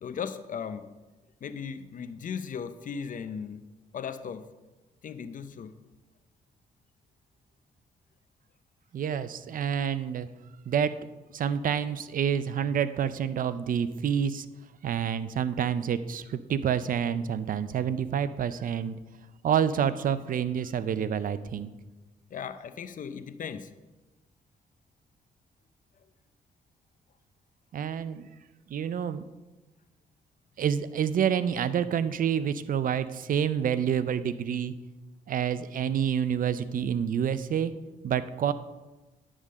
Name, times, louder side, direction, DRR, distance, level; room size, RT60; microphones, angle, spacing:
voice 1, 0.0-0.9 1.4-3.7 3.9-4.5 5.0-5.7 22.3-23.7, left 6 dB, 55° left, 11 dB, 0.6 m, -37 dB
voice 2, 8.9-10.3 10.7-11.0 11.3-14.5 14.8-19.0 19.4-21.7 27.7-28.3 28.7-29.2 30.6-34.7 35.3-37.7 38.0-38.5, right 8 dB, 60° right, 14 dB, 0.5 m, -28 dB
10.0 x 3.7 x 6.4 m, 1.2 s
cardioid pair, 65°, 16 cm